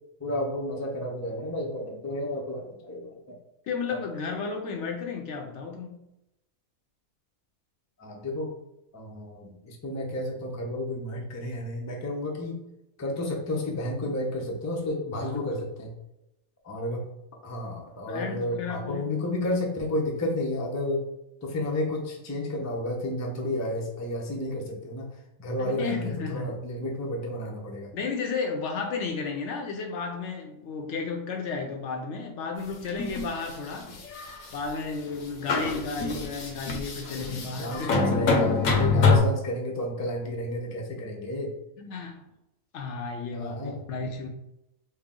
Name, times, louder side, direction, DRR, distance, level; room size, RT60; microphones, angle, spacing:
voice 1, 0.2-3.2 3.9-4.0 8.0-8.5 8.9-12.6 13.0-15.9 16.6-17.0 17.4-21.0 21.4-27.9 37.3-41.5 43.3-43.8, left 1 dB, 25° left, -1 dB, 0.4 m, -31 dB
voice 2, 3.7-6.0 15.2-15.4 18.1-19.1 25.6-26.5 27.9-33.9 34.5-38.3 41.8-42.2 42.7-43.6 43.9-44.3, left 4 dB, 65° left, 3 dB, 0.8 m, -33 dB
sound 1, 32.7-33.3 33.9-34.6 35.1-35.2 35.5-39.2, left 4 dB, 85° left, 1.2 m, -25 dB
4.3 x 2.0 x 3.7 m, 0.88 s
omnidirectional pair, 1.4 m